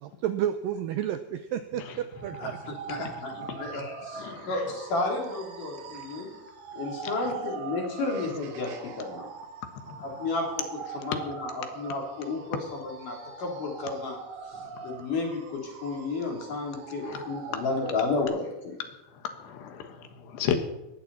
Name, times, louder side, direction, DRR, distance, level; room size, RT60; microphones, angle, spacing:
voice 1, 0.0-2.6, right 10 dB, 90° right, 10 dB, 2.0 m, -31 dB
voice 2, 1.9-3.8 4.2-4.7 7.2-7.4 9.9-10.0 11.1-11.2 17.1-17.2 19.4-20.6, left 8 dB, 80° left, 7 dB, 3.5 m, -35 dB
sound 1, 2.1-18.2, right 6 dB, 60° right, 2.8 m, -42 dB
voice 3, 2.9-6.3 6.7-9.3 10.0-14.2 14.4-18.8, left 3 dB, 50° left, 0 dB, 4.7 m, -32 dB
19.5 x 16.0 x 4.2 m, 0.96 s
omnidirectional pair, 4.8 m